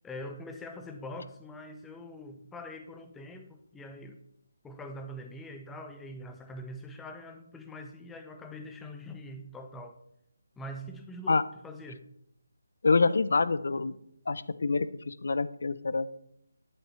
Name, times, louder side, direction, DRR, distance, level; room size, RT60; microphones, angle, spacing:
voice 1, 0.0-4.2 4.6-10.0 10.6-12.1, left 1 dB, 5° left, 6 dB, 0.5 m, -43 dB
voice 2, 12.8-13.9 14.3-16.1, left 4 dB, 65° left, 16 dB, 0.4 m, -26 dB
8.3 x 7.2 x 3.1 m, 0.76 s
figure-of-eight pair, 160°, 0 cm